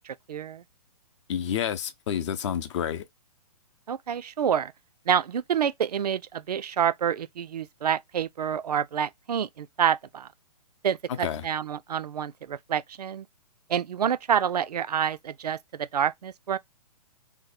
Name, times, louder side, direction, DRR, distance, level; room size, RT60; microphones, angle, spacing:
voice 1, 0.0-0.6 3.9-4.7 5.1-10.3 10.8-13.3 13.7-16.6, right 8 dB, 80° right, 0.4 m, -28 dB
voice 2, 1.3-3.0 11.1-11.4, left 9 dB, 50° left, 0.6 m, -29 dB
2.7 x 2.2 x 4.1 m
hypercardioid pair, 130°, 20 cm